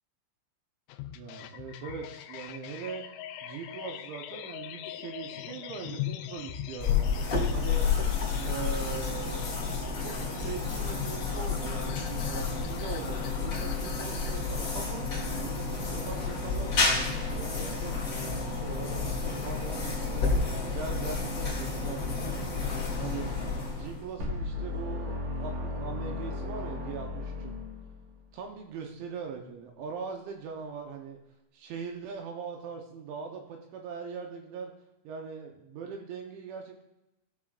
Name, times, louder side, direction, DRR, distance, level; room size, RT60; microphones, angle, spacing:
sound 1, 0.9-15.0, left 12 dB, 85° left, 3.1 m, -42 dB
voice 1, 1.2-3.1 3.4-7.1 7.5-7.9 8.4-9.5 10.0-10.2 10.4-18.0 18.6-22.6 23.0-27.6 28.3-31.2 31.5-34.7 35.0-36.8, right 6 dB, 75° right, 2 dB, 3.1 m, -41 dB
sound 2, 6.8-24.2, left 4 dB, 50° left, 1.4 m, -30 dB
sound 3, 24.2-28.2, left 2 dB, 60° right, 1.9 m, -35 dB
16.0 x 6.2 x 2.5 m, 0.91 s
omnidirectional pair, 5.8 m